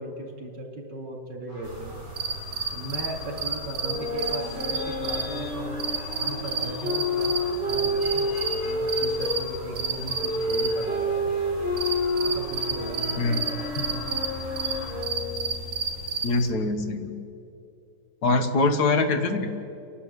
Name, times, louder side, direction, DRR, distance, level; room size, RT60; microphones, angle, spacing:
voice 1, 0.0-1.9 2.7-5.8 6.2-11.4 12.2-14.0, right 1 dB, 80° right, 1 dB, 3.5 m, -37 dB
sound 1, 1.5-15.0, left 1 dB, 20° left, 4.8 m, -42 dB
sound 2, 1.6-16.5, right 4 dB, 60° right, 2.7 m, -32 dB
sound 3, 3.8-9.4 10.1-15.6, left 1 dB, 5° right, 3.7 m, -29 dB
voice 2, 16.2-17.2 18.2-19.5, left 3 dB, 70° left, 7 dB, 1.9 m, -23 dB
29.5 x 11.5 x 8.3 m, 2.7 s
omnidirectional pair, 1.9 m